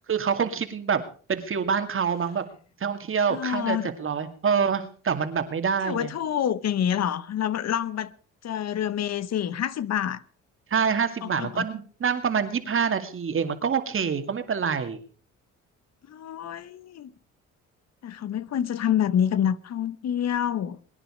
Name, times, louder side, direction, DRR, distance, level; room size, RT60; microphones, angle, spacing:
voice 1, 0.1-1.0 1.3-2.4 2.8-6.1 10.7-15.0, right 6 dB, 45° right, 2.3 m, -26 dB
voice 2, 3.3-3.9 5.8-8.1 8.4-10.2 11.2-11.7 16.1-17.1 18.0-20.8, left 9 dB, 60° left, 0.9 m, -27 dB
23.0 x 10.0 x 4.9 m
cardioid pair, 90°, 30 cm